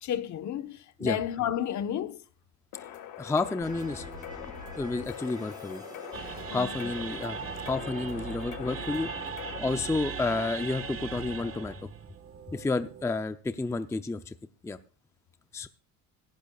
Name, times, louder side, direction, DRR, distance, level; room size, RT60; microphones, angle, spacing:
voice 1, 0.0-2.2 6.5-6.9, left 10 dB, 55° left, 1.3 m, -32 dB
sound 1, 2.7-9.6, left 12 dB, 70° left, 2.0 m, -43 dB
voice 2, 3.2-4.1 4.8-5.8 6.5-9.1 9.6-11.7 12.5-14.3 14.6-14.8 15.5-15.7, left 3 dB, 10° left, 0.6 m, -30 dB
sound 2, 3.6-11.7, equal, 10° right, 5.8 m, -45 dB
sound 3, 6.1-13.1, right 8 dB, 40° right, 1.5 m, -40 dB
17.5 x 15.5 x 2.4 m
cardioid pair, 135°, 35 cm